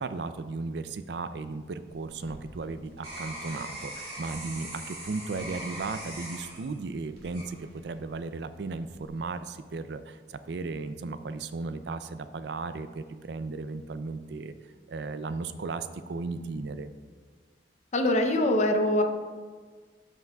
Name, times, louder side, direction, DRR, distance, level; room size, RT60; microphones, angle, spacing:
voice 1, 0.0-14.5 14.9-16.9, right 3 dB, 75° right, 11 dB, 0.4 m, -35 dB
sound 1, 1.9-8.1 8.6-9.1, right 1 dB, 40° right, 2.2 m, -41 dB
voice 2, 17.9-19.0, left 1 dB, 40° left, 5 dB, 0.6 m, -23 dB
12.5 x 5.8 x 2.3 m, 1.6 s
head